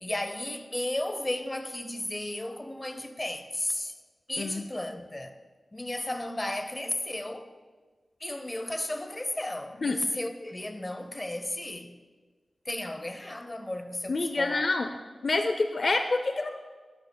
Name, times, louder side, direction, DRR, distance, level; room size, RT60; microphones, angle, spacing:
voice 1, 0.0-3.9 4.3-5.4 5.7-7.5 8.2-12.0 12.6-14.7 15.8-15.9 16.3-16.4, left 1 dB, 25° left, 0.7 m, -34 dB
voice 2, 14.1-14.9 15.2-16.5, left 3 dB, 60° left, 0.4 m, -27 dB
12.0 x 10.5 x 2.2 m
cardioid pair, 55°, 0 cm